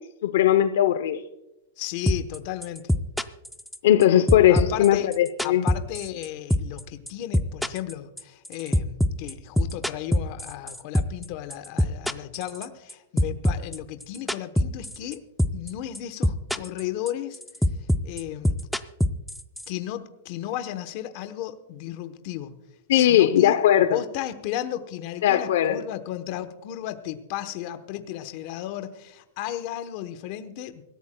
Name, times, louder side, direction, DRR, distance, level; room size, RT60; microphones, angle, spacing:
voice 1, 0.2-1.2 3.8-5.6 22.9-24.0 25.2-25.8, left 11 dB, 60° left, 11 dB, 0.6 m, -19 dB
voice 2, 1.8-2.8 4.5-5.1 5.4-15.2 15.5-17.4 18.0-18.5 19.7-22.6 22.9-23.5 23.8-30.8, left 12 dB, 35° left, 10 dB, 0.9 m, -34 dB
sound 1, 2.1-2.4 2.6-4.0 4.3-6.3 6.5-6.8 7.1-11.3 11.5-12.9 13.2-15.1 15.4-15.7 15.9-16.8 17.1-19.7, equal, ahead, 0.3 m, -23 dB
25.0 x 14.0 x 2.2 m, 0.96 s
supercardioid pair, 175°, 0 cm